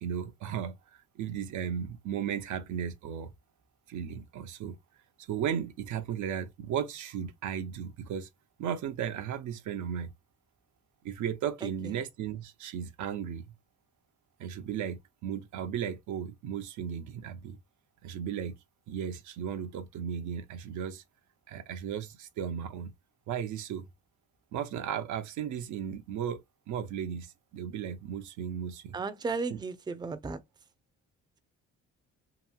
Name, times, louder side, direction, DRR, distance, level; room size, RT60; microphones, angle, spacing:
voice 1, 0.0-3.3 3.9-4.8 5.2-8.3 8.6-10.1 11.0-13.4 14.4-17.6 18.0-18.5 18.9-21.0 21.5-22.9 23.3-23.9 24.5-29.0 29.5-29.6, right 8 dB, 75° right, 0.6 m, -35 dB
voice 2, 28.9-30.4, right 4 dB, 15° right, 0.4 m, -34 dB
2.9 x 2.6 x 2.2 m
cardioid pair, 90°, 30 cm